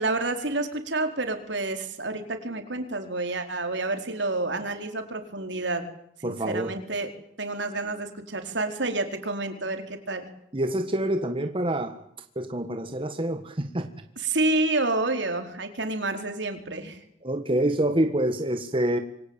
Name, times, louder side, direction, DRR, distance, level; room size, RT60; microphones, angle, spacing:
voice 1, 0.0-5.9 6.2-7.1 7.4-10.3 14.2-17.0, right 2 dB, 70° right, 6 dB, 4.4 m, -29 dB
voice 2, 6.2-6.7 10.5-12.0 12.3-13.9 17.2-19.0, right 1 dB, 30° right, 7 dB, 1.6 m, -26 dB
26.5 x 24.0 x 9.1 m, 0.72 s
head